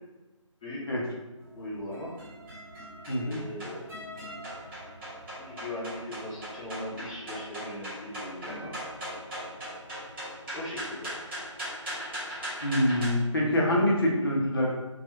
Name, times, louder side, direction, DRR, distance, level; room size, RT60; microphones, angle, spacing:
voice 1, 0.6-1.1 1.5-2.1 3.1-3.9 5.4-8.7 10.5-11.1, left 1 dB, 10° left, -8 dB, 0.5 m, -39 dB
sound 1, 1.4-13.1, equal, 25° right, 1.3 m, -40 dB
voice 2, 3.1-3.4 12.6-14.7, left 1 dB, 45° left, -3 dB, 0.9 m, -25 dB
3.8 x 2.4 x 3.0 m, 1.2 s
figure-of-eight pair, 155°, 17 cm